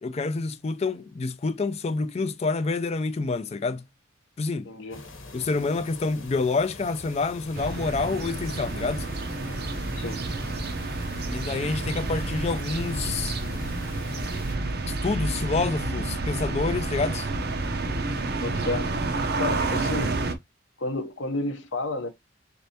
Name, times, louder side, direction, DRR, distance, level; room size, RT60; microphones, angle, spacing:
voice 1, 0.0-3.8 4.4-4.7 5.3-9.1 11.3-13.4 14.9-17.3, left 3 dB, 30° left, 0.4 m, -28 dB
voice 2, 4.6-5.0 9.9-10.2 18.4-18.9 19.4-20.2 20.8-22.1, left 2 dB, 70° left, 0.8 m, -31 dB
sound 1, 4.9-14.6, left 2 dB, 90° left, 1.2 m, -42 dB
sound 2, 7.5-20.3, right 2 dB, 55° right, 0.7 m, -29 dB
4.0 x 3.4 x 2.7 m
head